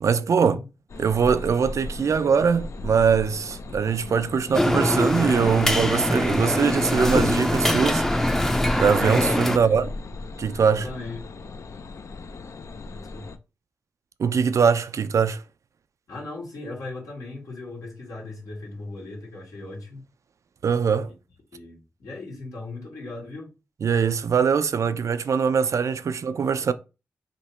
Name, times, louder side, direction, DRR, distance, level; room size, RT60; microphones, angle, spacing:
voice 1, 0.0-0.6 1.0-8.1 8.8-9.9 10.4-10.9 14.2-15.4 20.6-21.1 23.8-26.7, right 6 dB, 65° right, 0.4 m, -22 dB
sound 1, 0.9-13.4, left 2 dB, 60° left, 0.4 m, -36 dB
sound 2, 4.5-9.6, left 1 dB, 5° left, 0.5 m, -23 dB
voice 2, 9.4-9.8 10.7-11.2 12.9-13.3 16.1-20.0 21.1-21.2 21.5-23.5, left 2 dB, 80° left, 1.6 m, -38 dB
2.9 x 2.7 x 4.3 m
cardioid pair, 45°, 6 cm